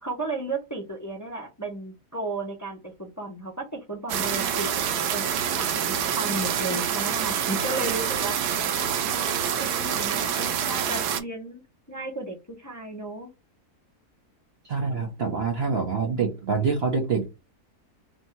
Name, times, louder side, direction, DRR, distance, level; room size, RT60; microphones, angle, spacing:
voice 1, 0.0-5.3 5.6-8.4 8.8-11.6 11.9-13.3, right 2 dB, 15° left, 0.7 m, -34 dB
sound 1, 4.1-11.2, right 8 dB, 90° right, 1.2 m, -26 dB
voice 2, 14.6-17.3, right 5 dB, 50° right, 0.8 m, -26 dB
3.1 x 2.6 x 4.4 m
omnidirectional pair, 1.6 m